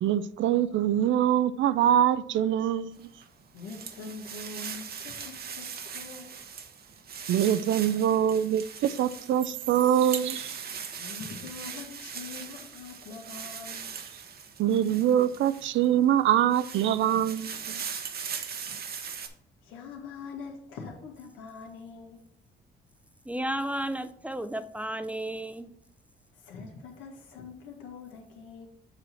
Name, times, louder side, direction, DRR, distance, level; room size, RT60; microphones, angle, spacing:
voice 1, 0.0-3.1 7.3-10.5 14.6-17.8, right 10 dB, 75° right, 0.5 m, -24 dB
sound 1, 3.0-15.9 16.3-19.3, right 6 dB, 50° right, 0.9 m, -40 dB
voice 2, 3.5-6.4 11.0-13.8 19.6-22.2 26.4-28.7, left 4 dB, 90° left, 1.7 m, -43 dB
voice 3, 23.3-25.7, right 1 dB, 5° right, 0.5 m, -33 dB
7.6 x 3.2 x 5.6 m
cardioid pair, 90°, 20 cm